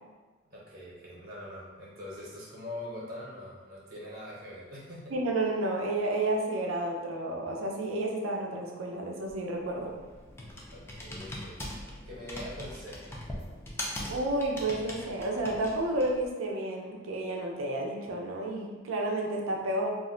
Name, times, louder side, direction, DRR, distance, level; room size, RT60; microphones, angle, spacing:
voice 1, 0.5-5.1 10.7-13.2, left 1 dB, 50° right, -6 dB, 0.8 m, -43 dB
voice 2, 5.1-9.9 14.1-19.9, right 2 dB, 80° right, 0 dB, 0.5 m, -31 dB
Computer keyboard, 9.3-16.3, left 1 dB, 15° left, 0.4 m, -41 dB
2.4 x 2.1 x 3.7 m, 1.3 s
head